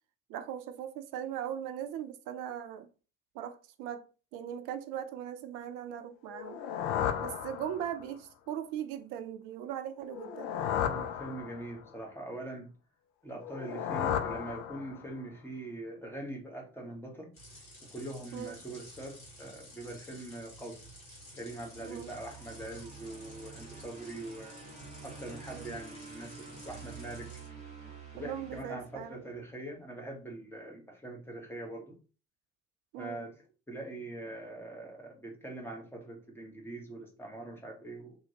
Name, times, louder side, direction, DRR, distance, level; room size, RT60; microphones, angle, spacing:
voice 1, 0.3-2.9 3.3-4.1 4.3-6.6 7.2-10.5 18.3-18.5 21.8-22.1 25.5-25.8 28.2-29.2 32.9-33.2, right 10 dB, 50° right, 0.5 m, -39 dB
sound 1, 6.3-8.1 10.1-11.9 13.4-15.2, left 9 dB, 55° left, 0.5 m, -34 dB
voice 2, 10.8-12.7 13.2-17.4 17.9-20.8 21.3-24.5 25.0-27.3 28.1-32.0 33.0-33.4 33.7-38.1, right 2 dB, 5° left, 1.0 m, -43 dB
sound 2, 17.3-27.5, equal, 80° left, 1.1 m, -52 dB
sound 3, 21.2-29.5, right 5 dB, 15° right, 1.1 m, -49 dB
2.8 x 2.7 x 2.8 m
figure-of-eight pair, 50°, 41 cm